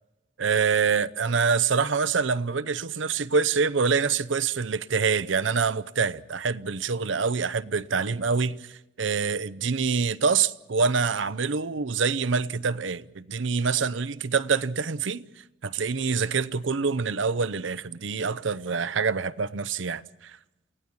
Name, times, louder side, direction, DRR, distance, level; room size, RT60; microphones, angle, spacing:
voice 1, 0.4-8.7 9.0-15.2 15.6-20.4, right 5 dB, 85° right, 0.7 m, -26 dB
29.0 x 17.0 x 7.3 m
head